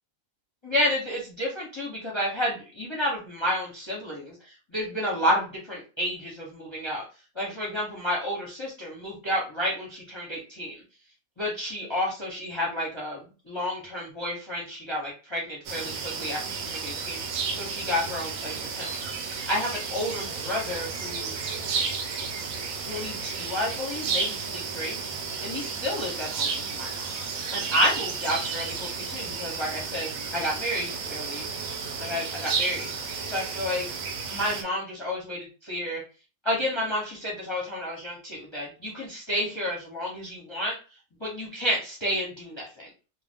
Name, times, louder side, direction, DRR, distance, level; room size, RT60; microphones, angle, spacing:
voice 1, 0.6-7.0 7.4-10.8 11.4-17.2 17.5-18.9 19.5-21.5 22.9-25.0 25.4-27.1 27.5-31.4 32.0-32.9 33.3-33.9 34.3-36.0 36.4-40.7 41.2-42.9, equal, 30° left, -4 dB, 0.6 m, -30 dB
sound 1, 15.7-34.6, right 5 dB, 80° right, 1.0 m, -32 dB
2.4 x 2.3 x 3.4 m, 0.34 s
omnidirectional pair, 1.4 m